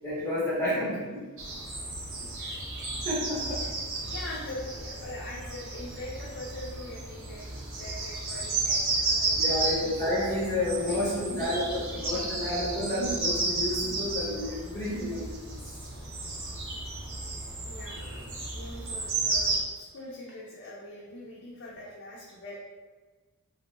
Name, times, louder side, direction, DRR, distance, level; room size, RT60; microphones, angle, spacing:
voice 1, 0.0-1.2 3.1-3.6 9.3-15.6, left 1 dB, 10° left, -8 dB, 0.7 m, -30 dB
sound 1, 1.4-19.6, right 3 dB, 65° right, 0.7 m, -33 dB
voice 2, 2.2-2.9 3.5-7.5 7.8-9.9 10.8-11.2 11.6-12.4 17.6-22.6, left 1 dB, 55° left, -5 dB, 0.5 m, -43 dB
3.3 x 2.2 x 3.0 m, 1.4 s
head